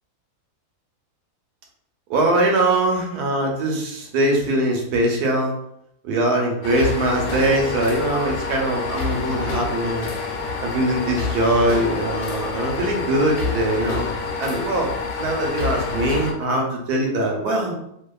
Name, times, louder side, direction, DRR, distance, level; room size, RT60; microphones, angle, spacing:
voice 1, 2.1-5.6 6.0-10.1 10.6-14.1 14.4-14.9 15.2-17.7, right 1 dB, 85° right, 1 dB, 1.1 m, -22 dB
sound 1, 6.6-16.3, left 4 dB, 80° left, 1.1 m, -27 dB
2.7 x 2.3 x 2.2 m, 0.74 s
omnidirectional pair, 1.6 m